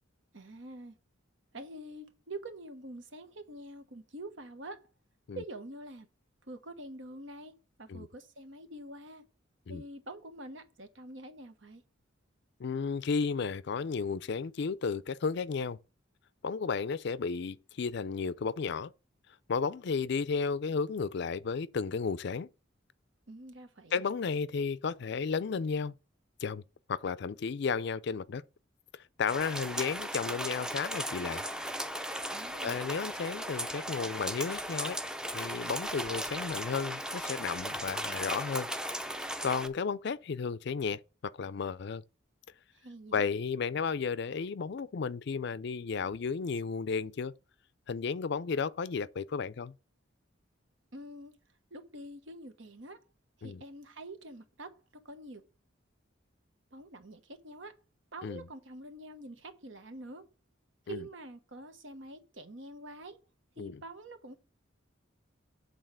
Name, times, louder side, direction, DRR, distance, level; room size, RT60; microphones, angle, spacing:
voice 1, 0.3-1.0 1.5-4.9 5.3-6.1 6.5-7.5 7.8-9.2 9.7-11.8 23.3-24.0 32.3-32.8 42.7-43.3 50.9-51.4 51.7-53.0 53.4-55.4 56.7-57.8 58.1-60.2 60.9-63.2 63.6-64.4, right 1 dB, 70° right, 1.2 m, -46 dB
voice 2, 12.6-15.8 16.4-18.9 19.5-22.5 23.9-25.9 26.4-26.6 26.9-28.4 28.9-31.5 32.6-35.0 35.3-38.7 39.4-42.0 43.1-47.3 47.9-49.7 53.4-53.6 58.2-58.4 60.9-61.1 63.6-63.8, left 5 dB, 60° left, 0.4 m, -33 dB
sound 1, 29.3-39.7, equal, 5° right, 0.5 m, -37 dB
8.0 x 3.9 x 6.3 m
head